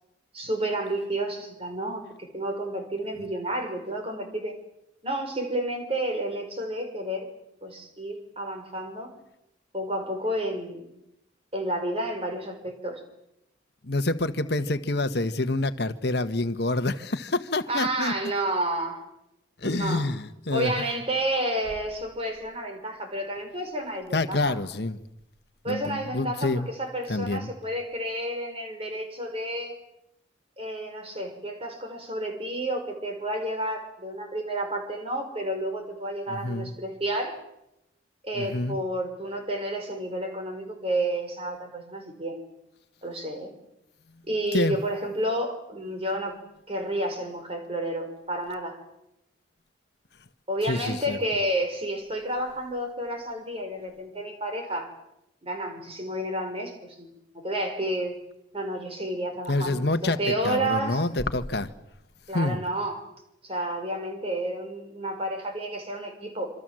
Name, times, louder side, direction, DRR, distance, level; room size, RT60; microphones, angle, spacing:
voice 1, 0.3-4.5 5.0-7.3 7.6-9.1 9.7-10.9 11.5-13.0 17.7-19.0 19.6-20.0 20.5-24.5 25.6-29.7 30.6-37.4 38.2-42.4 43.0-43.5 44.3-46.4 46.7-48.8 50.5-54.9 55.4-57.1 57.4-58.2 58.5-61.0 62.3-63.0 63.4-66.5, right 1 dB, 30° right, 4 dB, 5.9 m, -30 dB
voice 2, 13.8-18.1 19.6-20.7 24.1-25.0 25.7-26.7 27.1-27.5 36.3-36.7 38.4-38.8 44.5-44.8 50.7-51.2 59.5-61.7 62.3-62.6, left 2 dB, 60° left, 10 dB, 1.3 m, -27 dB
27.0 x 26.0 x 7.6 m, 0.85 s
head